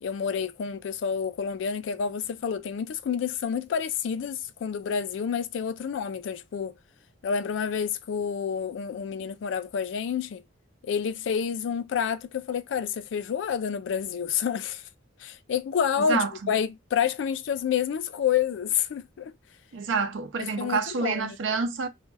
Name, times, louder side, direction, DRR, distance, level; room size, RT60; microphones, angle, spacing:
voice 1, 0.0-6.7 7.2-10.4 10.8-14.8 15.2-16.2 16.5-19.3 20.4-21.4, left 7 dB, 70° left, 0.3 m, -29 dB
voice 2, 16.0-16.5 19.7-21.9, right 5 dB, 75° right, 0.5 m, -28 dB
2.2 x 2.1 x 3.2 m
head